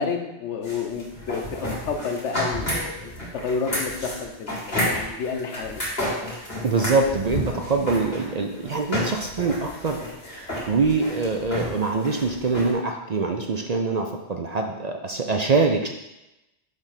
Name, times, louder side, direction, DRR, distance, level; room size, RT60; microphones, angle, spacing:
voice 1, 0.0-1.6 1.8-5.8 7.5-7.6, left 5 dB, 85° left, 4 dB, 1.2 m, -30 dB
sound 1, 0.6-12.7, left 1 dB, 55° left, 2.6 m, -30 dB
voice 2, 6.6-10.0 10.7-15.9, right 4 dB, 50° right, 3 dB, 0.5 m, -24 dB
7.2 x 3.4 x 5.7 m, 0.93 s
omnidirectional pair, 1.2 m